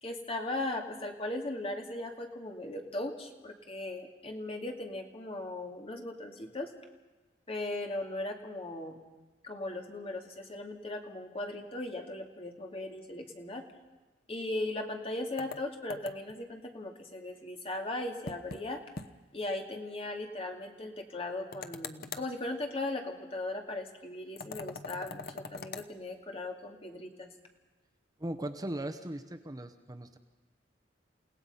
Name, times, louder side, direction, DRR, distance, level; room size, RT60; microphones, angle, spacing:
voice 1, 0.0-6.7 7.5-9.0 9.4-13.6 14.3-18.8 19.3-27.3, left 2 dB, 35° left, 3 dB, 2.4 m, -38 dB
sound 1, 15.4-16.4 18.3-18.6 19.0-19.1 19.4-19.5 21.5-22.3 24.4-25.9, left 4 dB, 55° left, 1.0 m, -42 dB
voice 2, 28.2-30.2, right 1 dB, 20° right, 8 dB, 0.9 m, -38 dB
29.5 x 17.5 x 5.6 m, 1.2 s
head